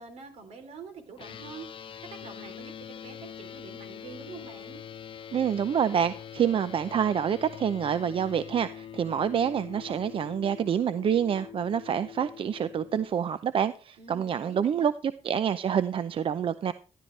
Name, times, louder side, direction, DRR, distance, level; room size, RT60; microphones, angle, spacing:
voice 1, 0.0-1.7 2.1-4.8 14.0-14.9, right 5 dB, 75° right, 7 dB, 3.4 m, -46 dB
sound 1, 1.2-13.1, left 8 dB, 50° left, 0.8 m, -44 dB
voice 2, 5.3-14.9 15.2-16.7, right 8 dB, 55° right, 13 dB, 0.6 m, -27 dB
13.0 x 12.0 x 3.3 m, 0.35 s
cardioid pair, 100°, 11 cm